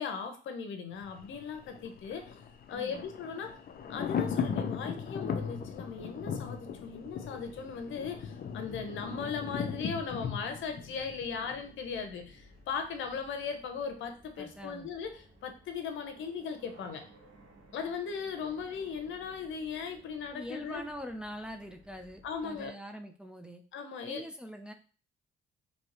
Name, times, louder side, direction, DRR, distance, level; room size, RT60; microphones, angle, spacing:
voice 1, 0.0-2.4 2.7-3.6 3.9-17.0 17.7-20.8 22.2-22.7 23.7-24.2, left 6 dB, 75° left, 6 dB, 0.9 m, -38 dB
Thunder, 1.0-12.0 12.3-12.4, left 6 dB, 50° left, 0.6 m, -38 dB
voice 2, 2.7-3.1 14.4-14.9 20.3-23.6 24.0-24.7, equal, 5° right, 4 dB, 0.5 m, -43 dB
sound 1, 5.0-22.7, right 1 dB, 70° right, 1.6 m, -59 dB
4.4 x 2.9 x 3.0 m, 0.38 s
cardioid pair, 90°, 20 cm